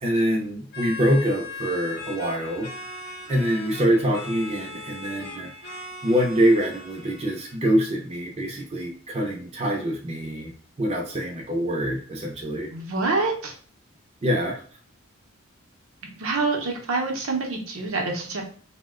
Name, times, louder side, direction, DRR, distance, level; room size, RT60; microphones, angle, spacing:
voice 1, 0.0-2.7 3.3-5.5 6.0-10.5 10.8-12.7 14.2-14.6, equal, 30° right, -1 dB, 0.5 m, -24 dB
sound 1, 0.7-7.5, left 3 dB, 50° left, 0.6 m, -39 dB
voice 2, 12.7-13.5 16.2-18.4, right 3 dB, 70° right, 1 dB, 0.7 m, -26 dB
2.8 x 2.1 x 3.6 m, 0.43 s
head